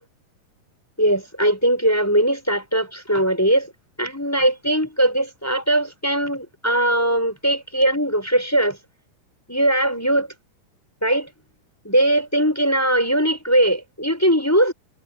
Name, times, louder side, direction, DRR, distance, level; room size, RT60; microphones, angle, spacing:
voice 1, 1.0-3.7 4.0-8.8 9.5-10.3 11.0-11.3 11.8-14.7, right 1 dB, 5° left, 5.3 m, -20 dB
omnidirectional pair, 3.9 m